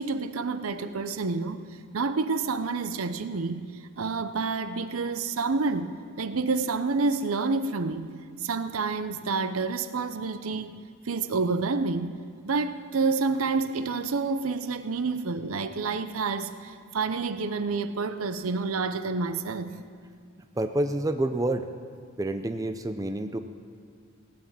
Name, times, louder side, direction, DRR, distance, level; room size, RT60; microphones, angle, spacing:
voice 1, 0.0-1.6 1.9-3.7 4.0-8.1 8.4-10.8 11.1-19.7, right 4 dB, 85° right, 11 dB, 0.7 m, -28 dB
voice 2, 20.6-21.7 22.2-23.4, right 1 dB, 15° right, 8 dB, 0.5 m, -28 dB
17.0 x 8.9 x 7.3 m, 2.1 s
head